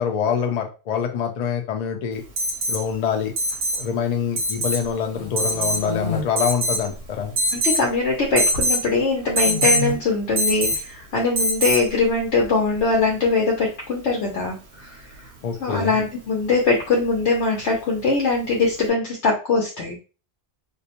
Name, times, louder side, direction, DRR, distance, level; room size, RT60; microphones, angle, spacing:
voice 1, 0.0-2.2 2.7-3.3 3.8-7.3 15.4-15.9, left 7 dB, 55° left, 3 dB, 0.5 m, -25 dB
Alarm, 2.4-2.8 3.4-3.8 4.4-4.8 5.4-5.8 6.4-6.9 7.4-7.8 8.4-8.8 9.4-9.8 10.4-10.9 11.4-11.9 13.6-13.7, equal, 60° right, 0.8 m, -22 dB
sound 1, 4.8-6.2 6.9-7.5 7.8-8.7 9.3-9.9 10.5-10.7 11.9-12.8, left 2 dB, 70° left, 1.2 m, -31 dB
voice 2, 7.5-15.0 15.6-20.0, left 3 dB, 90° left, -2 dB, 1.0 m, -22 dB
2.5 x 2.0 x 2.8 m, 0.33 s
omnidirectional pair, 1.1 m